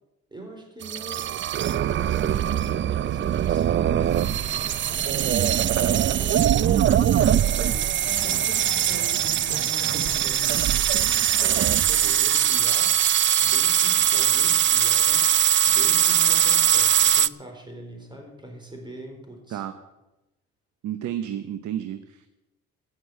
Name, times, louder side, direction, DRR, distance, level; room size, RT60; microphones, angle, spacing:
voice 1, 0.3-1.5 1.9-4.5 4.9-7.0 7.6-13.0 13.4-15.3 15.6-19.6, right 1 dB, 15° right, 3 dB, 4.2 m, -41 dB
sound 1, 0.8-17.3, right 10 dB, 40° right, 0.4 m, -21 dB
sound 2, 4.0-10.3, right 4 dB, 60° right, 2.3 m, -44 dB
voice 2, 20.8-22.3, right 11 dB, 75° right, 10 dB, 0.9 m, -31 dB
14.5 x 6.9 x 9.1 m, 1.0 s
cardioid pair, 90°, 30 cm